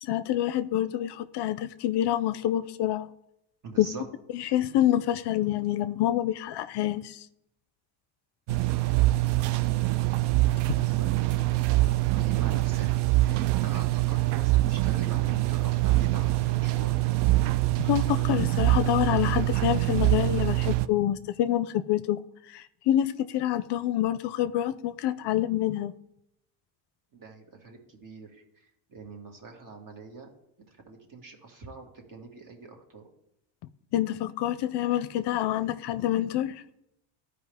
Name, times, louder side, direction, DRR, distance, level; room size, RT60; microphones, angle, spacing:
voice 1, 0.0-3.1 3.8-3.9 4.3-7.3 17.8-22.2 22.5-25.9 33.9-36.6, left 12 dB, 60° left, 0.5 m, -27 dB
voice 2, 3.6-4.1 10.7-17.0 27.1-30.3 30.7-33.1, right 4 dB, 40° right, 1.9 m, -44 dB
sound 1, 8.5-20.9, right 18 dB, 60° right, 0.5 m, -24 dB
12.5 x 5.0 x 3.5 m
cardioid pair, 100°, 48 cm